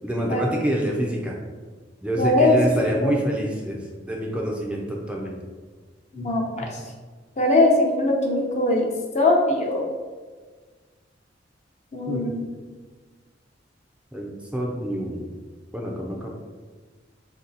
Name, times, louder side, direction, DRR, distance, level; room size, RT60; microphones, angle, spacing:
voice 1, 0.0-1.4 2.0-5.4 12.1-12.3 14.1-15.4 15.7-16.4, equal, 5° right, -2 dB, 0.5 m, -27 dB
voice 2, 2.2-2.6 2.9-3.2 6.1-6.7 7.4-8.9 9.1-9.9 11.9-12.5, left 2 dB, 40° left, 0 dB, 0.7 m, -21 dB
4.0 x 2.8 x 3.9 m, 1.4 s
head